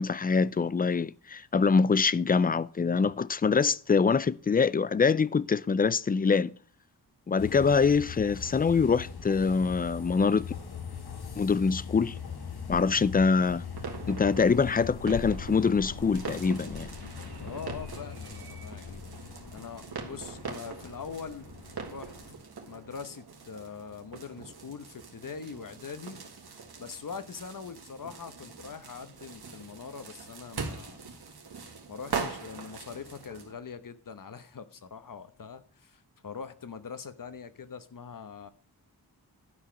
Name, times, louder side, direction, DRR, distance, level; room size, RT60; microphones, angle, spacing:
voice 1, 0.0-6.6 7.3-10.5 11.4-12.2 12.7-13.6 14.1-16.9, left 5 dB, 25° left, 0.3 m, -24 dB
sound 1, 7.4-22.3, left 6 dB, 75° left, 1.6 m, -41 dB
sound 2, 13.7-33.5, right 5 dB, 75° right, 1.9 m, -42 dB
voice 2, 17.4-21.5 21.8-22.1 22.7-26.2 26.8-31.0 31.9-38.5, left 6 dB, 55° left, 1.0 m, -43 dB
12.0 x 4.9 x 6.1 m
wide cardioid pair, 95°, 38 cm